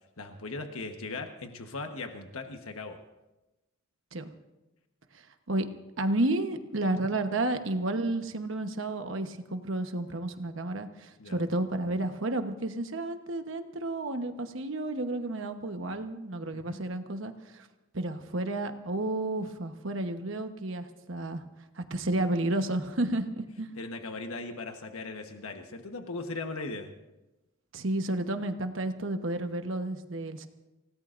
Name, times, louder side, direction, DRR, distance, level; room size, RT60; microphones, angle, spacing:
voice 1, 0.2-3.0 6.9-7.1 11.2-11.5 16.5-16.8 23.8-26.9, left 3 dB, 90° left, 5 dB, 1.2 m, -38 dB
voice 2, 6.0-17.7 17.9-21.4 21.8-23.7 27.7-30.5, right 2 dB, 65° right, 7 dB, 1.1 m, -31 dB
28.5 x 17.5 x 2.6 m, 1.0 s
head